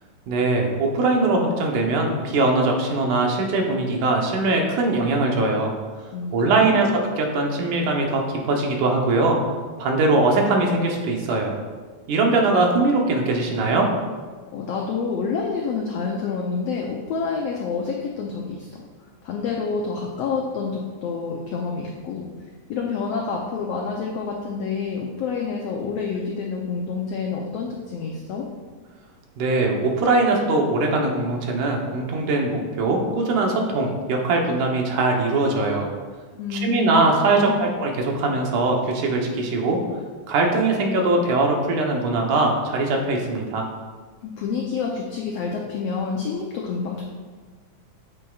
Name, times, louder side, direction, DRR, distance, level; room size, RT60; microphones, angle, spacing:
voice 1, 0.3-5.7 6.3-6.9 7.2-9.4 9.8-11.5 12.1-13.9 29.4-35.9 36.6-39.8 40.3-43.6, right 2 dB, 75° right, 1 dB, 2.4 m, -21 dB
voice 2, 6.1-6.9 14.5-18.7 19.2-22.3 22.7-28.4 36.4-37.0 37.3-37.7 44.2-47.0, left 5 dB, 90° left, 0 dB, 1.4 m, -28 dB
8.5 x 8.2 x 2.4 m, 1.4 s
omnidirectional pair, 3.7 m